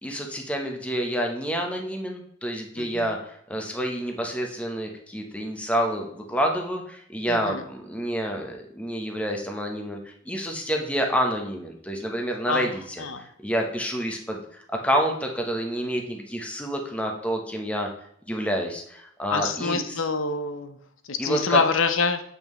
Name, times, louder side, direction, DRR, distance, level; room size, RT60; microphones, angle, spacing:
voice 1, 0.0-13.0 13.4-14.4 14.8-17.9 18.3-20.0 21.2-21.6, equal, 5° left, 2 dB, 1.0 m, -28 dB
voice 2, 2.8-3.2 7.3-7.6 12.5-12.7 13.0-13.2 19.3-20.8 21.1-22.2, left 4 dB, 90° left, 8 dB, 0.8 m, -26 dB
8.5 x 5.4 x 3.2 m, 0.69 s
head